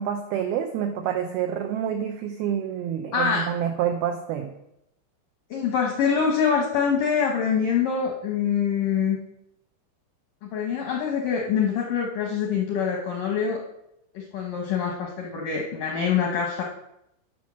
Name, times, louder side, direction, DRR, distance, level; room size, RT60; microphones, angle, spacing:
voice 1, 0.0-4.5, right 9 dB, 85° right, 5 dB, 2.2 m, -27 dB
voice 2, 3.1-3.5 5.5-9.2 10.5-13.6 14.1-16.6, left 6 dB, 75° left, 1 dB, 1.9 m, -25 dB
13.0 x 6.2 x 6.2 m, 0.82 s
omnidirectional pair, 5.5 m